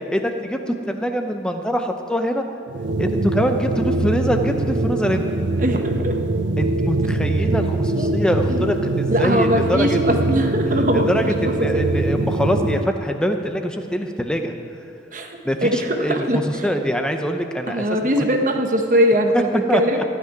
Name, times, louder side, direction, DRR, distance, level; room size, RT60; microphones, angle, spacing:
voice 1, 0.1-2.4 3.0-5.3 6.6-10.0 10.9-14.5 15.4-17.8 19.3-20.0, equal, 5° left, 5 dB, 0.7 m, -23 dB
sound 1, 2.7-12.9, right 2 dB, 80° right, 0.6 m, -23 dB
voice 2, 5.6-6.2 8.0-8.1 8.5-8.7 9.1-11.3 11.6-11.8 15.1-15.3 15.6-16.7 17.7-20.1, equal, 45° right, 4 dB, 1.1 m, -21 dB
15.0 x 6.0 x 9.6 m, 2.6 s
head